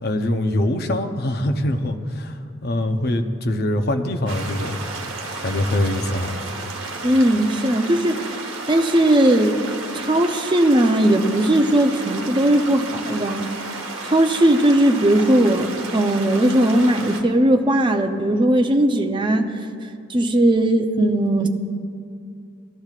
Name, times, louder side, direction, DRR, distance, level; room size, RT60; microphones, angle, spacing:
voice 1, 0.0-2.3 2.6-4.8 5.4-6.3, left 1 dB, 55° left, 5 dB, 0.7 m, -23 dB
sound 1, 4.3-17.2, right 3 dB, 75° right, 1.2 m, -32 dB
voice 2, 7.0-8.3 8.7-9.7 9.9-13.5 14.0-19.5 20.1-21.5, right 1 dB, 25° right, 4 dB, 0.6 m, -18 dB
17.5 x 12.0 x 2.4 m, 2.4 s
head